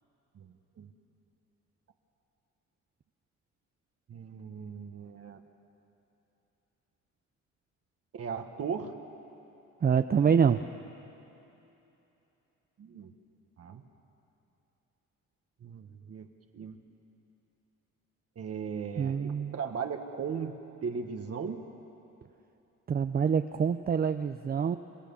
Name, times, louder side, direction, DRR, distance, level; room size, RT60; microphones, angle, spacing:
voice 1, 0.3-0.9 4.1-5.5 8.1-8.9 12.8-13.1 13.6-13.8 15.6-16.3 16.5-16.8 18.3-21.6, right 6 dB, 50° right, 4 dB, 1.4 m, -37 dB
voice 2, 9.8-10.6 19.0-19.5 22.9-24.8, right 7 dB, 30° right, 9 dB, 0.5 m, -26 dB
28.0 x 15.0 x 7.1 m, 3.0 s
cardioid pair, 90°, 30 cm